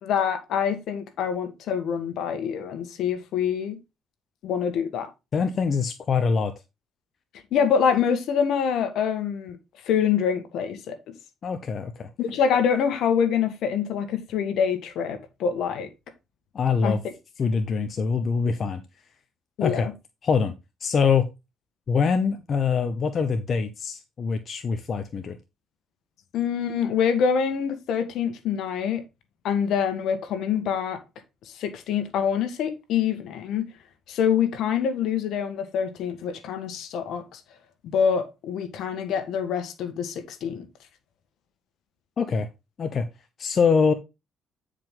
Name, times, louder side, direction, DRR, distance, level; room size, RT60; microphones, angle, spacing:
voice 1, 0.0-3.8 4.4-5.1 7.5-9.6 9.8-11.1 12.2-15.9 16.8-16.9 19.6-19.9 26.3-29.0 29.4-31.0 31.4-33.7 34.1-37.4 37.9-40.7, left 7 dB, 70° left, 1.6 m, -25 dB
voice 2, 5.3-6.5 11.4-12.1 16.5-17.0 17.4-18.8 19.6-19.9 20.2-20.5 20.8-21.3 21.9-25.4 42.2-42.5 42.8-43.1 43.4-43.9, left 5 dB, 50° left, 0.8 m, -24 dB
9.1 x 5.0 x 3.7 m
supercardioid pair, 75°, 0 cm